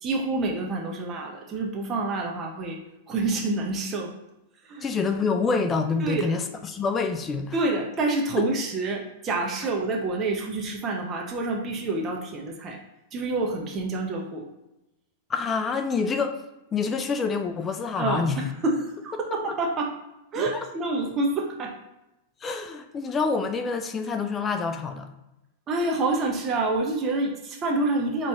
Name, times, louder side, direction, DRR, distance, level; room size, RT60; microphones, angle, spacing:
voice 1, 0.0-2.8 3.1-4.1 4.6-4.9 6.0-6.4 7.5-12.8 13.1-14.4 18.0-19.9 20.3-21.8 25.7-28.3, right 2 dB, 30° right, 0 dB, 0.7 m, -27 dB
voice 2, 4.8-7.5 15.3-16.4 16.7-18.4 20.5-20.6 22.4-25.1, left 4 dB, 25° left, 7 dB, 0.4 m, -27 dB
4.0 x 3.0 x 3.6 m, 0.93 s
hypercardioid pair, 115°, 0 cm